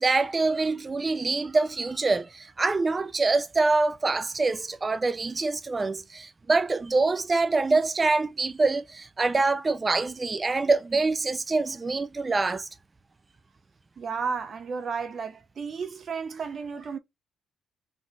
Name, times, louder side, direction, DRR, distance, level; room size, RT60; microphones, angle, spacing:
voice 1, 0.0-12.7, right 3 dB, 25° right, 0.5 m, -25 dB
voice 2, 14.0-17.0, right 5 dB, 50° right, 0.9 m, -33 dB
5.3 x 3.0 x 2.6 m
cardioid pair, 90°, 0 cm